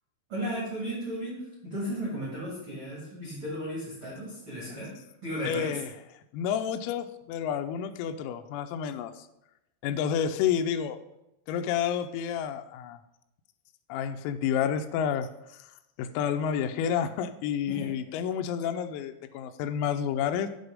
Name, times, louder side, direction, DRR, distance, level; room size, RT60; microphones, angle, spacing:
voice 1, 0.3-4.9 5.2-5.8 17.7-17.9, equal, 70° right, -5 dB, 1.2 m, -35 dB
voice 2, 5.4-5.9 6.3-9.3 9.8-11.0 11.5-13.0 13.9-15.7 16.0-20.5, left 8 dB, 90° left, 8 dB, 3.3 m, -30 dB
8.4 x 4.0 x 5.1 m, 0.88 s
omnidirectional pair, 5.9 m